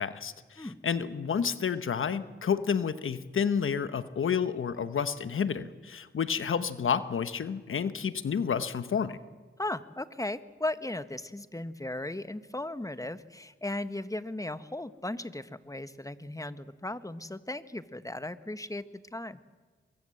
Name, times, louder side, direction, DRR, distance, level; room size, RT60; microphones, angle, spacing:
voice 1, 0.0-9.2, left 7 dB, 85° left, 12 dB, 1.1 m, -30 dB
voice 2, 9.6-18.8 19.1-19.4, left 1 dB, 15° left, 12 dB, 1.3 m, -36 dB
23.5 x 22.5 x 7.8 m, 1.4 s
cardioid pair, 45°, 20 cm